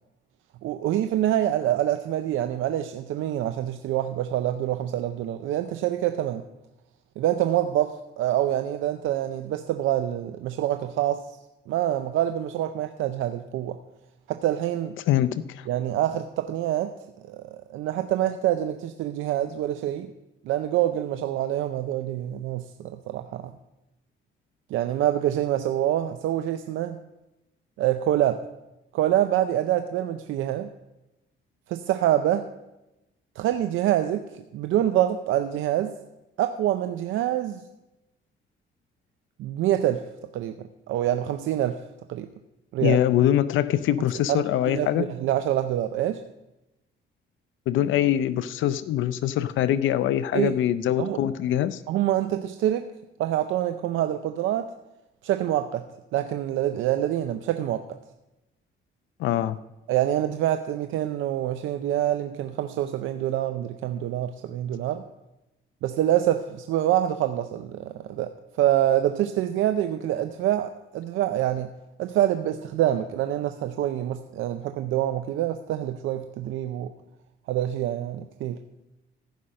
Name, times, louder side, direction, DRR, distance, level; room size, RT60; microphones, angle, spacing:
voice 1, 0.6-6.4 7.2-11.3 11.7-13.8 14.3-14.9 15.7-16.9 17.3-20.1 20.5-23.4 24.7-27.0 27.8-28.4 28.9-30.7 31.7-32.5 33.4-34.2 34.5-35.9 36.4-37.6 39.4-40.0 40.3-40.5 40.9-41.8 42.1-42.3 42.7-43.0 44.3-46.2 50.3-50.5 51.0-51.2 51.9-52.9 53.2-54.7 55.2-55.8 56.1-57.8 59.9-65.0 65.8-68.3 68.6-71.7 72.0-76.9 77.5-78.6, right 12 dB, 85° right, 8 dB, 0.6 m, -26 dB
voice 2, 15.1-15.7 42.8-45.1 47.7-51.8 59.2-59.6, left 11 dB, 80° left, 14 dB, 0.5 m, -23 dB
14.5 x 5.6 x 6.4 m, 0.96 s
cardioid pair, 90°, 20 cm